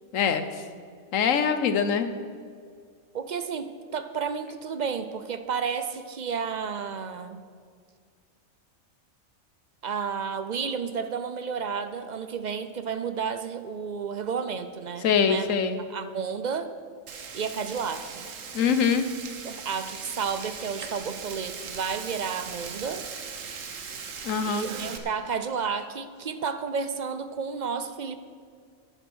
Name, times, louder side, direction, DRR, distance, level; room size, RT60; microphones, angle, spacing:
voice 1, 0.1-0.5 1.1-2.1 15.0-15.8 18.5-19.1 24.2-24.7, left 7 dB, 70° left, 10 dB, 1.2 m, -23 dB
voice 2, 3.1-7.4 9.8-15.5 15.9-16.7 17.3-18.2 19.4-23.0 24.4-28.2, right 6 dB, 50° right, 10 dB, 0.5 m, -31 dB
Frying (food), 17.1-25.0, right 6 dB, 70° right, 1.4 m, -39 dB
10.0 x 10.0 x 6.3 m, 2.1 s
omnidirectional pair, 1.4 m